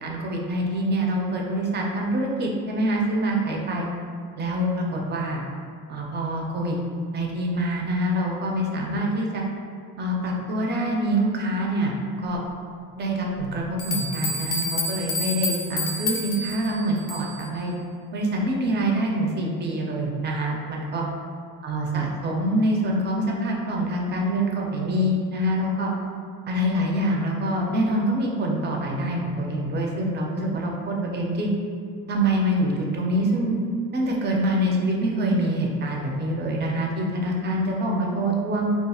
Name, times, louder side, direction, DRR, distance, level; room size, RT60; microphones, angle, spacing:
voice 1, 0.0-3.9 4.4-5.4 5.9-6.8 7.1-9.4 10.0-12.0 12.2-12.4 13.0-17.7 18.1-21.0 21.6-25.9 26.5-31.5 32.1-33.6 33.9-38.8, right 1 dB, 30° right, -1 dB, 0.4 m, -25 dB
sound 1, 13.4-13.5 13.8-17.5, left 2 dB, 45° left, 0.4 m, -29 dB
2.8 x 2.3 x 4.1 m, 2.2 s
cardioid pair, 175°, 35 cm